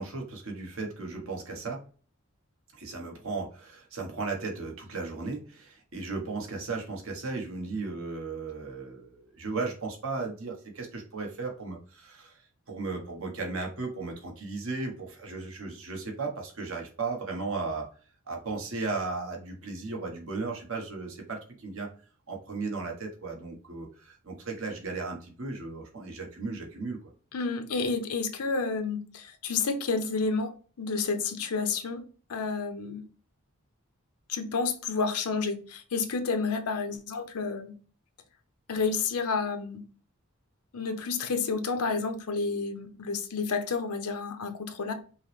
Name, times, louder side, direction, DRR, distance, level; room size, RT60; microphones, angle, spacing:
voice 1, 0.0-1.8 2.8-12.4 12.7-17.9 18.3-21.9 22.3-27.0, right 3 dB, 60° right, 1 dB, 1.0 m, -35 dB
voice 2, 27.3-30.5 30.8-32.0 32.3-33.0 34.3-37.7 38.7-39.8 40.7-44.9, left 4 dB, 80° left, 8 dB, 0.6 m, -30 dB
5.4 x 2.1 x 3.1 m, 0.39 s
head